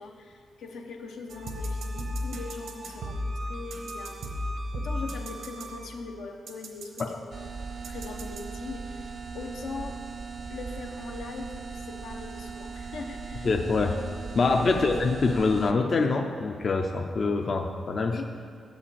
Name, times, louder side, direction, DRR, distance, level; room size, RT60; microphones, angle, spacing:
voice 1, 0.0-7.1 7.8-10.0 10.5-13.5 14.7-14.9 18.1-18.2, left 4 dB, 90° left, 2 dB, 0.8 m, -41 dB
sound 1, 1.3-6.1 6.5-7.0 7.8-8.4, equal, 80° right, 1.0 m, -35 dB
sound 2, 7.3-15.7, right 4 dB, 55° right, 0.4 m, -38 dB
voice 2, 13.4-14.0 14.3-18.2, left 3 dB, 45° left, 4 dB, 0.5 m, -25 dB
7.1 x 5.0 x 6.9 m, 2.3 s
cardioid pair, 105°, 0 cm